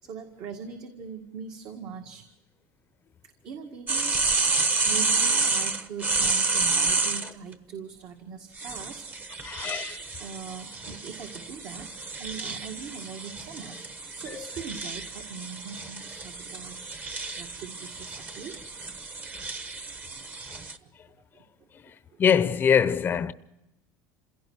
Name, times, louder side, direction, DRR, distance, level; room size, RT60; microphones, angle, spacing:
voice 1, 0.0-2.2 3.4-4.2 4.4-9.1 10.2-18.6 20.8-20.9 21.3-21.7 22.1-22.2, right 6 dB, 55° right, 1.9 m, -41 dB
sound 1, 3.9-7.3 8.6-20.8, right 3 dB, 20° right, 1.1 m, -30 dB
voice 2, 9.4-10.0 14.3-14.4 22.2-23.3, left 7 dB, 25° left, 0.7 m, -23 dB
27.0 x 17.0 x 6.3 m
cardioid pair, 140°, 8 cm